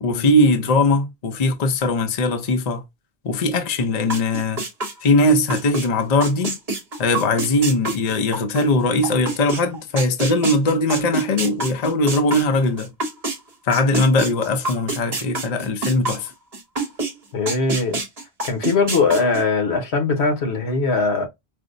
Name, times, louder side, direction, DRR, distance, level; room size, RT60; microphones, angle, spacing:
voice 1, 0.0-2.8 3.2-4.6 5.0-6.6 7.0-12.9 13.6-16.3, left 2 dB, 45° left, 0.7 m, -20 dB
sound 1, 4.1-5.9 6.2-13.4 13.7-17.1 17.5-19.4, right 2 dB, 40° right, 1.0 m, -27 dB
voice 2, 17.3-18.0 18.4-21.3, left 4 dB, 90° left, 1.3 m, -20 dB
4.9 x 2.0 x 2.5 m
omnidirectional pair, 1.1 m